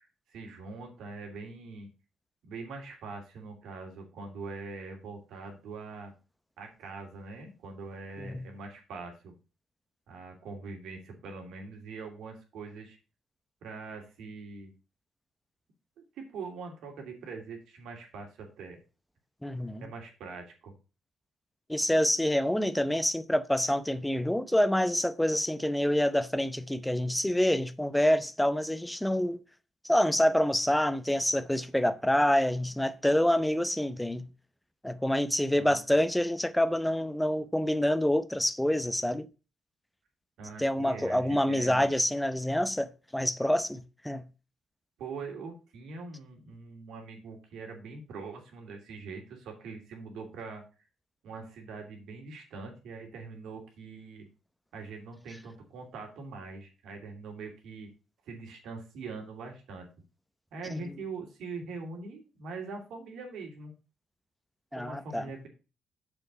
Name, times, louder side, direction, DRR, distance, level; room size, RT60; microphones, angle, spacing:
voice 1, 0.0-1.9 2.4-6.1 6.6-9.3 10.1-13.0 13.6-14.7 16.0-18.8 19.8-20.7 35.5-35.8 40.4-41.9 45.0-50.6 51.2-54.2 54.7-57.9 58.3-59.9 60.5-63.7 64.7-65.5, right 4 dB, 80° right, 2.7 m, -43 dB
voice 2, 19.4-19.9 21.7-29.4 29.8-34.3 34.8-39.3 40.6-44.2 60.7-60.8 64.7-65.2, left 1 dB, 5° left, 0.7 m, -27 dB
6.9 x 4.5 x 6.6 m
cardioid pair, 90°, 0 cm